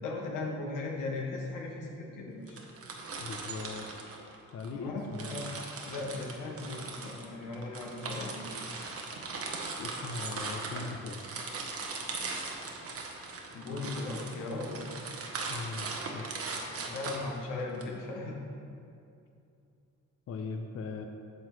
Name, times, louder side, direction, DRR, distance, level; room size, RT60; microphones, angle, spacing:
voice 1, 0.0-2.6 4.7-5.5 5.9-8.4 13.5-14.8 16.7-18.4, left 3 dB, 85° left, -1 dB, 1.3 m, -37 dB
sound 1, 2.5-4.7 5.1-17.8, right 3 dB, 50° right, 1.0 m, -39 dB
voice 2, 3.2-3.9 4.5-5.6 9.8-11.3 15.5-16.5 20.3-21.1, left 4 dB, 50° left, 4 dB, 0.5 m, -40 dB
9.0 x 5.9 x 3.1 m, 2.6 s
cardioid pair, 90°, 30 cm